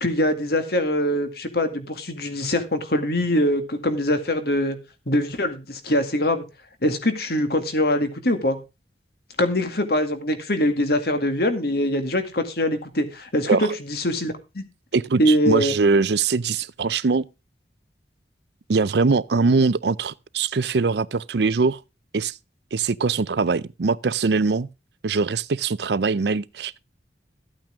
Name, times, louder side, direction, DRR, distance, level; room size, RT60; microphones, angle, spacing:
voice 1, 0.0-4.8 5.1-6.4 6.8-8.6 9.4-14.6 15.2-15.7, left 1 dB, 60° left, 2.1 m, -23 dB
voice 2, 14.9-17.2 18.7-21.8 22.1-22.3 22.7-24.7 25.0-26.8, right 4 dB, 70° right, 0.5 m, -22 dB
13.5 x 8.9 x 3.6 m
head